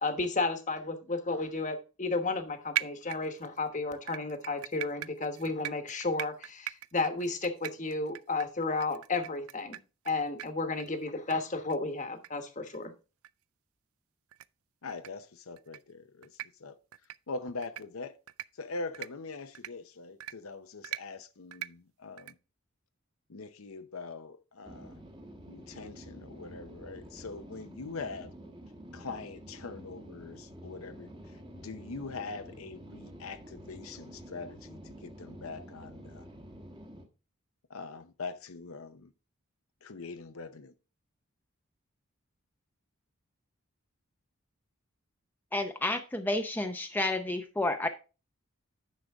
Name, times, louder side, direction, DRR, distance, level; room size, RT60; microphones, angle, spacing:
voice 1, 0.0-9.8 10.0-12.9, left 3 dB, 35° left, 1.2 m, -33 dB
sound 1, 2.8-3.6 4.1-10.1 10.4-10.5 10.8-10.9 11.3-11.4 11.7-11.8 12.2-12.3 12.7-12.8 13.2-13.3 14.3-14.5 14.9-15.1 15.6-15.8 16.2-16.5 16.9-17.2 17.6-17.8 18.3-18.5 18.9-19.1 19.6-19.7 20.2-20.3 20.8-21.0 21.5-21.7 22.2-22.3, right 14 dB, 80° right, 0.4 m, -38 dB
voice 2, 14.8-16.8 17.3-18.2 18.5-22.4 23.3-25.0 25.5-28.3 28.9-36.3 37.7-39.1 39.8-40.7, left 3 dB, 80° left, 0.7 m, -43 dB
sound 2, 24.6-37.1, right 1 dB, 20° right, 1.3 m, -49 dB
voice 3, 45.5-47.9, left 2 dB, 10° left, 0.6 m, -30 dB
10.0 x 6.5 x 3.5 m
head